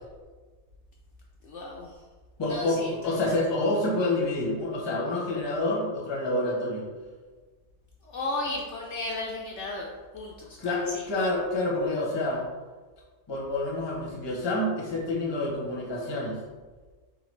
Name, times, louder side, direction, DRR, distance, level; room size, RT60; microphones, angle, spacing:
voice 1, 1.4-2.0 2.5-3.3 8.0-9.9 10.1-11.1, left 2 dB, 65° left, -2 dB, 0.8 m, -35 dB
voice 2, 2.4-6.8 10.6-12.4 13.3-16.4, left 2 dB, 25° left, -3 dB, 0.6 m, -28 dB
3.8 x 3.4 x 3.1 m, 1.4 s
omnidirectional pair, 1.5 m